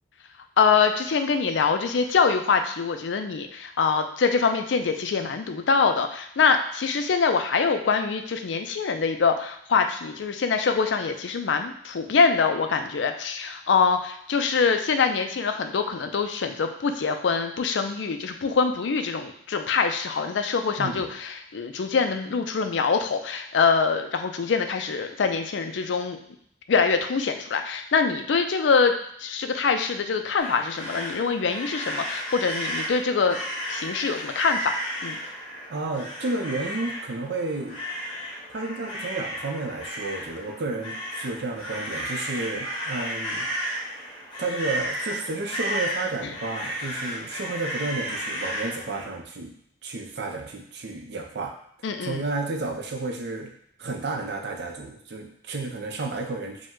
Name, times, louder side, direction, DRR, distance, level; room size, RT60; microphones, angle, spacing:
voice 1, 0.6-26.2 26.7-28.9 29.2-33.4 33.7-34.8 35.0-35.2 51.8-52.2, left 5 dB, 75° left, 7 dB, 0.4 m, -24 dB
sound 1, 30.4-49.0, equal, 30° left, 1.6 m, -33 dB
voice 2, 35.7-37.8 38.5-43.5 44.4-49.5 49.8-51.6 52.0-53.5 53.8-56.7, right 3 dB, 65° right, 3 dB, 0.6 m, -31 dB
5.0 x 2.2 x 3.7 m, 0.70 s
head